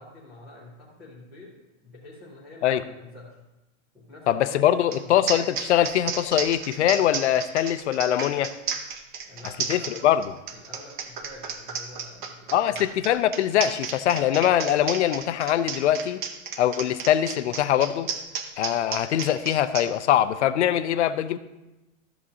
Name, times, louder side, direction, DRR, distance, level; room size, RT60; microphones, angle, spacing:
voice 1, 0.0-3.4 3.9-5.2 9.2-10.0 10.5-12.8, left 1 dB, 5° right, -9 dB, 0.5 m, -47 dB
voice 2, 4.3-8.5 9.7-10.2 12.5-16.2 16.6-18.1 18.6-21.4, left 11 dB, 60° left, 13 dB, 0.5 m, -22 dB
sound 1, 4.9-5.0 5.3-19.9, right 6 dB, 40° right, 0.7 m, -32 dB
13.0 x 7.7 x 2.7 m, 1.0 s
supercardioid pair, 180°, 39 cm